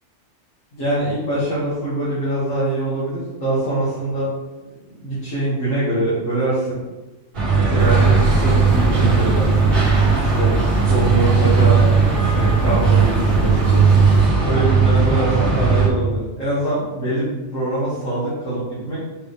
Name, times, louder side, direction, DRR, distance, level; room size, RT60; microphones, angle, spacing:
voice 1, 0.7-4.3 5.0-6.8 7.5-8.6 8.9-9.7 10.2-10.5 10.8-11.9 12.3-14.0 14.4-19.0, right 1 dB, 75° left, -10 dB, 2.5 m, -23 dB
sound 1, 7.3-15.9, right 5 dB, 50° right, 1.7 m, -16 dB
sound 2, 7.8-14.3, right 1 dB, 90° right, 1.4 m, -27 dB
6.3 x 5.8 x 3.4 m, 1.2 s
omnidirectional pair, 1.3 m